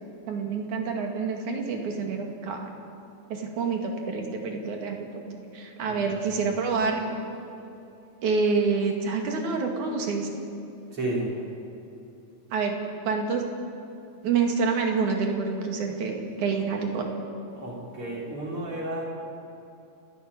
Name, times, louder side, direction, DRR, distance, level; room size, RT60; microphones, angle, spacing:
voice 1, 0.3-2.7 3.3-5.2 5.5-7.2 8.2-10.3 12.5-12.8 13.1-13.4 14.2-17.1, right 4 dB, 65° right, 2 dB, 3.7 m, -27 dB
voice 2, 5.9-6.7 10.9-11.3 17.5-19.0, right 1 dB, 40° right, -3 dB, 4.7 m, -33 dB
29.0 x 11.5 x 8.9 m, 2.8 s
omnidirectional pair, 3.7 m